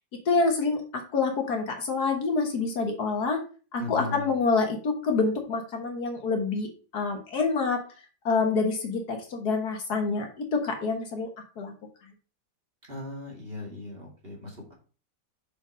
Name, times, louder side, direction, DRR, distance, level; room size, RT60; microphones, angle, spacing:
voice 1, 0.3-3.4 3.7-7.8 8.3-11.3 11.6-11.7, left 4 dB, 65° left, 3 dB, 1.9 m, -27 dB
voice 2, 3.8-4.3 12.9-14.7, left 2 dB, 30° right, -2 dB, 2.7 m, -38 dB
6.6 x 5.0 x 5.0 m, 0.37 s
omnidirectional pair, 1.9 m